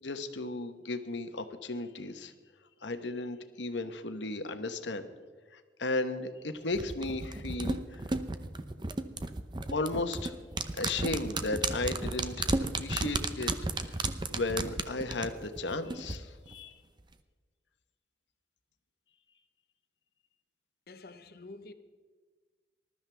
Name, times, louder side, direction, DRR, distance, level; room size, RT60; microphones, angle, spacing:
voice 1, 0.0-2.3 2.8-5.0 5.5-8.0 9.7-10.3 10.8-12.5 12.8-13.5 13.8-14.0 14.3-16.8, left 2 dB, 85° left, 1.1 m, -35 dB
sound 1, 6.7-16.2 16.5-16.6, right 3 dB, 25° right, 0.7 m, -33 dB
voice 2, 20.9-21.7, left 2 dB, 55° left, 1.0 m, -48 dB
20.0 x 12.5 x 3.4 m
head